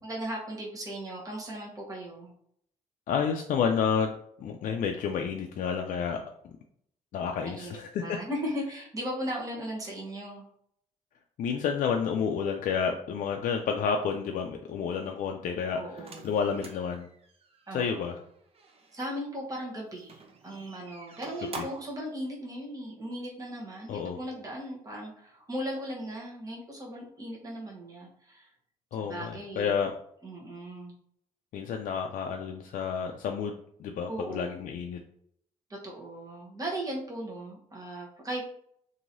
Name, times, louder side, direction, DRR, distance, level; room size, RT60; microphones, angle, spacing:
voice 1, 0.0-2.3 7.3-10.4 15.7-16.2 17.7-18.1 18.9-28.5 29.0-29.7 30.2-30.9 34.1-34.6 35.7-38.5, equal, 25° right, -3 dB, 1.0 m, -37 dB
voice 2, 3.1-6.2 7.1-8.2 11.4-17.1 17.7-18.2 21.6-21.7 23.9-24.2 28.9-29.9 31.5-35.0, left 6 dB, 70° left, 3 dB, 0.4 m, -30 dB
sound 1, 16.0-19.0 20.0-22.0, right 4 dB, 45° right, 0.7 m, -47 dB
3.0 x 2.7 x 2.6 m, 0.68 s
cardioid pair, 80°, 14 cm